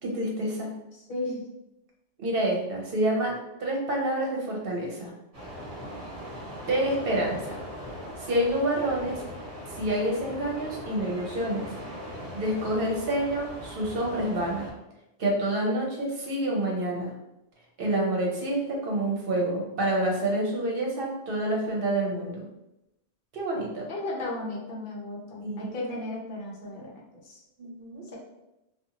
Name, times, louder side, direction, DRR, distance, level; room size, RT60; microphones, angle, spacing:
voice 1, 0.0-0.7 2.2-5.1 6.7-7.6 8.2-9.2 9.7-11.7 12.3-14.7 15.2-17.1 17.8-22.5 23.3-23.9 25.4-25.7 27.6-28.0, right 1 dB, 60° right, -1 dB, 0.9 m, -28 dB
voice 2, 1.1-1.4 23.9-26.9 27.2-27.4, left 2 dB, 55° left, -3 dB, 0.9 m, -34 dB
sound 1, 5.3-14.7, equal, 30° right, 1.4 m, -40 dB
2.5 x 2.4 x 2.8 m, 0.91 s
omnidirectional pair, 1.1 m